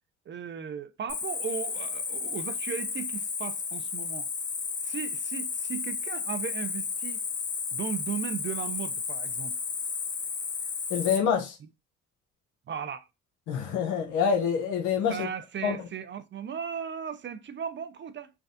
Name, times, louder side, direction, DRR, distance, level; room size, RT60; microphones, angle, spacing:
voice 1, 0.3-4.3 4.8-7.2 7.7-9.6 12.7-13.1 15.1-18.3, right 7 dB, 40° right, 0.4 m, -36 dB
Cricket, 1.1-11.2, left 5 dB, 40° left, 0.7 m, -33 dB
voice 2, 10.9-11.6 13.5-15.3 15.6-15.8, left 7 dB, 90° left, 0.8 m, -26 dB
3.3 x 2.3 x 2.5 m
cardioid pair, 90°, 30 cm